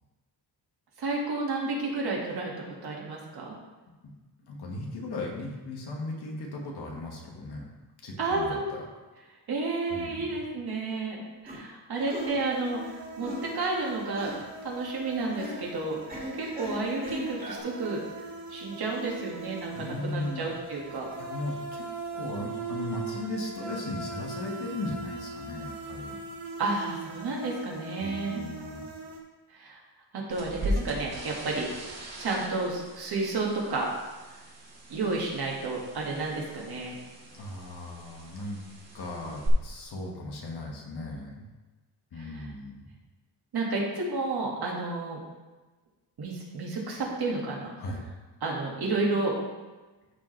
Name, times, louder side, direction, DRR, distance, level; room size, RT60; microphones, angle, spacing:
voice 1, 1.0-2.5 2.8-3.6 8.2-8.7 9.5-12.8 13.2-14.3 14.6-16.0 16.3-18.0 18.5-21.1 26.6-28.4 29.5-29.8 30.1-31.7 32.2-33.9 34.9-37.0 42.2-42.4 43.5-45.2 46.2-47.7 48.4-49.3, right 3 dB, 65° right, -2 dB, 2.0 m, -31 dB
voice 2, 4.4-7.7 8.0-8.8 9.9-10.4 19.7-20.4 21.2-21.8 22.1-26.2 28.0-28.9 37.3-38.6 38.9-41.5 42.1-42.8 47.8-48.0, left 2 dB, 70° left, -1 dB, 1.8 m, -37 dB
sound 1, 11.4-11.6 12.1-12.4 13.2-13.5 14.1-14.4 15.3-15.6 16.1-17.6, equal, 20° right, 2.4 m, -38 dB
sound 2, 12.0-29.2, right 3 dB, 90° right, 1.9 m, -40 dB
sound 3, 30.3-39.5, equal, 40° right, 1.9 m, -39 dB
13.5 x 5.0 x 3.3 m, 1.2 s
wide cardioid pair, 170°, 41 cm